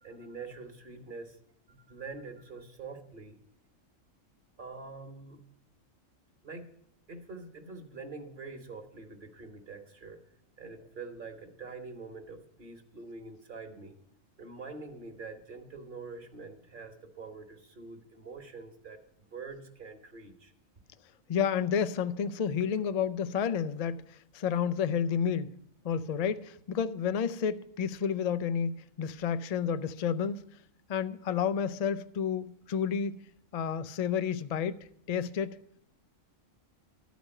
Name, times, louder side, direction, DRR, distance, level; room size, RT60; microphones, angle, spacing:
voice 1, 0.0-1.4 1.7-3.4 4.6-5.4 6.4-6.7 7.1-10.2 10.6-14.0 14.4-19.0 19.3-20.5, right 4 dB, 45° right, 1.2 m, -45 dB
voice 2, 21.3-25.6 25.8-28.7 29.0-30.4 30.9-33.2 33.5-34.8 35.1-35.6, left 7 dB, 80° left, 0.3 m, -30 dB
13.0 x 5.2 x 8.8 m
omnidirectional pair, 1.3 m